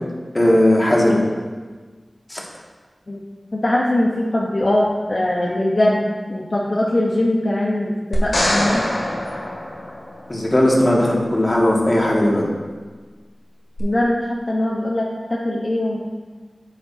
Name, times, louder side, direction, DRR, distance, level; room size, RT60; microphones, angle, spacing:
voice 1, 0.3-1.2 2.3-2.4 10.3-12.4, left 1 dB, 35° left, -3 dB, 2.1 m, -17 dB
voice 2, 3.5-8.8 13.8-16.0, left 1 dB, 55° left, -3 dB, 1.1 m, -21 dB
sound 1, 8.1-10.4 13.8-13.9, left 1 dB, 85° left, 2.1 m, -23 dB
10.0 x 8.4 x 2.8 m, 1.4 s
wide cardioid pair, 50°, 0 cm